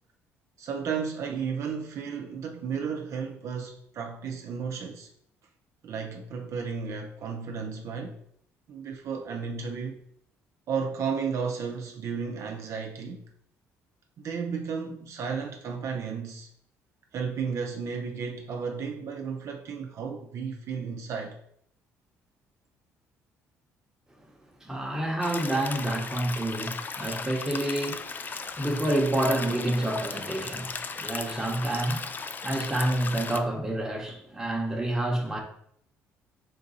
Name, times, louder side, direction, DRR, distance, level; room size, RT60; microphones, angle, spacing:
voice 1, 0.6-5.1 5.8-8.2 8.7-10.0 10.7-13.2 14.2-16.5 17.1-21.4, right 6 dB, 60° right, 0.5 m, -33 dB
voice 2, 24.6-35.4, right 1 dB, 10° right, 1.0 m, -29 dB
sound 1, 25.2-33.4, left 5 dB, 35° left, 0.3 m, -36 dB
3.8 x 2.5 x 4.0 m
supercardioid pair, 80°, 6 cm